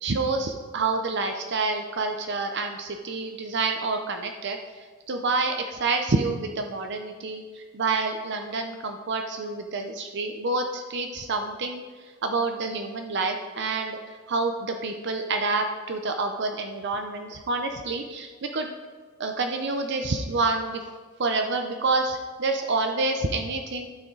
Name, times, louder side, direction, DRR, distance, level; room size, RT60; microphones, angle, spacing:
voice 1, 0.0-4.6 5.1-11.8 12.2-14.0 14.3-18.7 19.2-20.8 21.2-23.9, right 3 dB, 60° right, 5 dB, 0.7 m, -28 dB
12.0 x 6.2 x 3.9 m, 1.5 s
head